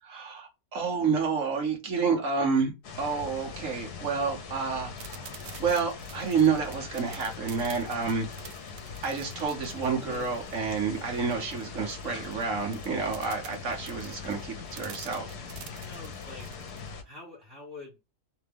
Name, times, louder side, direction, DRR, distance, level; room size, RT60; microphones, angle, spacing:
voice 1, 0.0-2.7 3.0-4.9 5.6-8.5 9.0-15.3, right 5 dB, 55° right, 1.2 m, -29 dB
sound 1, 2.8-17.0, left 5 dB, 70° left, 1.4 m, -41 dB
sound 2, 5.0-16.9, right 9 dB, 75° right, 1.2 m, -48 dB
voice 2, 15.1-16.5 17.0-18.0, left 2 dB, 15° right, 2.9 m, -47 dB
3.9 x 3.4 x 3.4 m
omnidirectional pair, 1.8 m